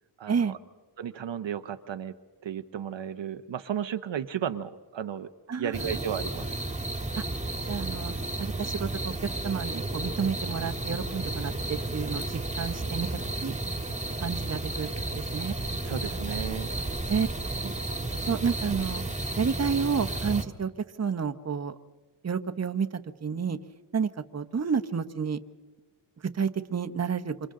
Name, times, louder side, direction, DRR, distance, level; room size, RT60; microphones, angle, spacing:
voice 1, 0.2-0.6 1.0-2.1 2.4-5.3 5.6-6.6 15.8-16.7, right 9 dB, 60° right, 10 dB, 0.9 m, -34 dB
sound 1, 5.7-20.4, right 2 dB, 15° right, 1.9 m, -32 dB
voice 2, 7.7-13.1 13.4-13.6 14.2-14.9 15.3-15.5 17.1-17.3 17.6-17.7 18.3-19.0 19.4-20.7 21.0-21.7 22.2-22.9 23.2-23.6 23.9-25.4 26.3-27.3, right 6 dB, 30° right, 10 dB, 1.1 m, -30 dB
27.5 x 26.5 x 3.8 m, 1.4 s
cardioid pair, 80°, 50 cm